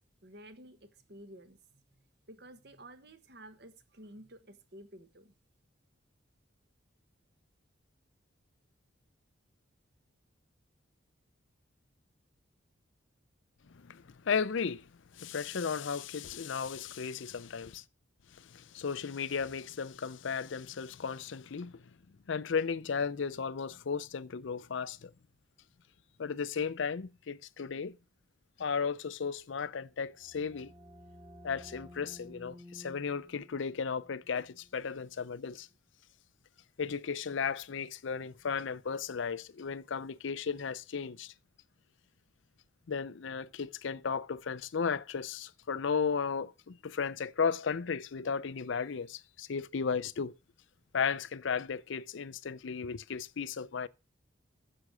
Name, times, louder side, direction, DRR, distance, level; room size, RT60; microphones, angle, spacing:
voice 1, 0.2-5.3, right 1 dB, 55° right, 1.3 m, -53 dB
voice 2, 13.7-17.8 18.3-21.8 22.3-25.1 26.2-27.9 28.6-30.7 31.4-35.7 36.8-41.3 42.9-50.4 50.9-53.9, left 6 dB, 70° left, 0.5 m, -35 dB
sound 1, 29.9-35.4, left 1 dB, 30° right, 2.1 m, -54 dB
9.8 x 6.7 x 6.0 m
head